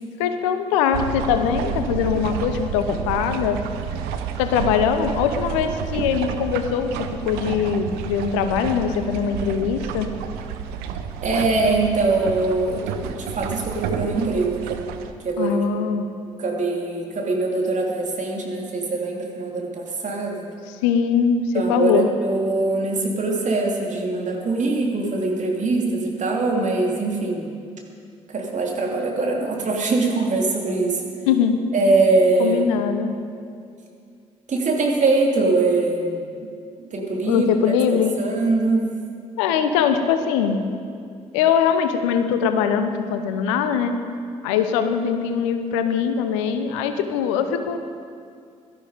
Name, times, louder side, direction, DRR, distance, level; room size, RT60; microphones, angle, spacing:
voice 1, 0.2-3.6 4.4-10.1 15.4-16.1 20.8-22.1 31.3-31.6 32.4-33.1 37.3-38.2 39.4-40.6 41.3-44.0 44.4-47.8, left 7 dB, 80° left, 8 dB, 0.8 m, -22 dB
sound 1, 0.9-15.1, right 8 dB, 75° right, 0.8 m, -30 dB
voice 2, 11.2-14.8 15.2-15.9 16.4-20.4 21.5-27.5 28.3-31.0 31.7-32.8 34.5-36.2 36.9-37.5 37.9-38.9, right 3 dB, 50° right, 0 dB, 3.0 m, -22 dB
17.0 x 13.0 x 5.1 m, 2.3 s
hypercardioid pair, 40°, 16 cm